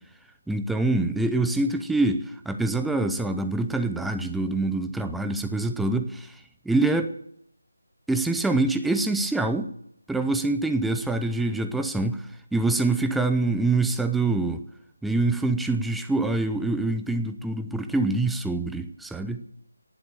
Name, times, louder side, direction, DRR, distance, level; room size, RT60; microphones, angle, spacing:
voice 1, 0.5-6.4 6.7-7.1 8.1-9.7 10.1-14.6 15.0-19.4, right 2 dB, ahead, 7 dB, 0.6 m, -25 dB
18.5 x 7.8 x 8.9 m, 0.74 s
figure-of-eight pair, 160°, 0 cm